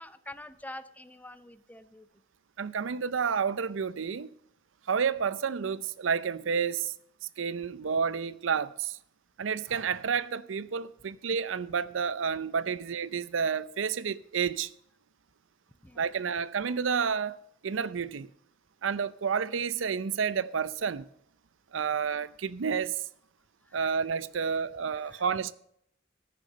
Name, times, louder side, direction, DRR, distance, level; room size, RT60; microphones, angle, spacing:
voice 1, 0.0-2.1 15.8-16.0 23.7-24.0 24.5-24.6 24.9-25.2, left 1 dB, 10° left, 0.5 m, -46 dB
voice 2, 2.6-4.3 4.9-6.9 7.4-9.0 9.4-14.7 16.0-17.4 17.6-18.3 18.8-21.1 21.7-23.0 23.7-25.5, right 6 dB, 85° right, 0.5 m, -30 dB
14.0 x 6.7 x 5.4 m
head